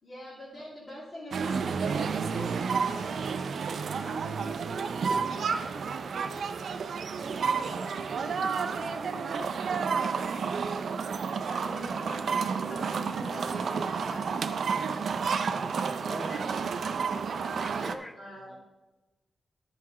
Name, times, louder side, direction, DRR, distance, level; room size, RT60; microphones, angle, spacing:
voice 1, 0.0-6.3 11.2-14.6 18.1-18.6, left 1 dB, 35° left, -8 dB, 2.8 m, -46 dB
sound 1, 1.3-17.9, right 5 dB, 60° right, 0.5 m, -31 dB
voice 2, 7.1-10.6 15.5-17.0 18.5-18.6, right 1 dB, 10° right, -2 dB, 1.9 m, -48 dB
voice 3, 16.1-16.5 17.5-18.2, left 1 dB, 10° left, 9 dB, 0.6 m, -42 dB
12.5 x 5.8 x 4.7 m, 1.1 s
wide cardioid pair, 170°, 0 cm